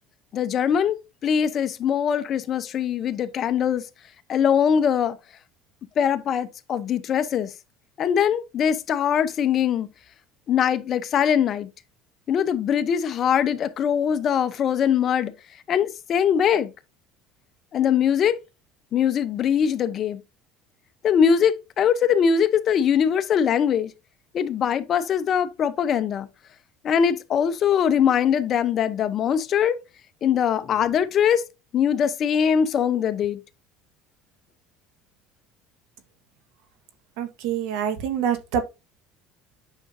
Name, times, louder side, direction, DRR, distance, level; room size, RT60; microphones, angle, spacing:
voice 1, 0.3-1.0 1.2-3.8 4.3-5.2 6.0-7.5 8.0-9.9 10.5-11.7 12.3-15.3 15.7-16.7 17.7-18.3 18.9-20.2 21.0-23.9 24.3-26.3 26.8-29.8 30.2-31.4 31.7-33.4, left 8 dB, 40° left, 0.8 m, -22 dB
voice 2, 37.2-38.6, right 8 dB, 75° right, 1.5 m, -26 dB
9.0 x 5.9 x 2.7 m
cardioid pair, 140°, 0 cm